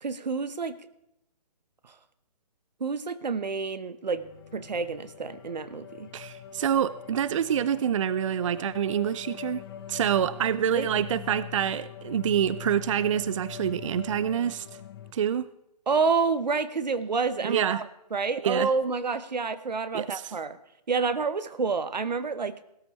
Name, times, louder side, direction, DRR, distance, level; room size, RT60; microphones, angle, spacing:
voice 1, 0.0-0.8 2.8-4.3 4.5-6.1 10.7-10.9 15.9-17.8 18.1-20.6 20.9-22.6, right 4 dB, 85° right, 13 dB, 1.0 m, -28 dB
sound 1, 4.2-15.1, left 9 dB, 35° left, 0.8 m, -43 dB
voice 2, 6.1-9.6 9.9-14.7 15.1-15.5 17.4-17.8 18.4-18.7 19.9-20.3, right 9 dB, 50° right, 17 dB, 0.4 m, -27 dB
18.0 x 13.0 x 3.2 m, 0.85 s
hypercardioid pair, 150°, 21 cm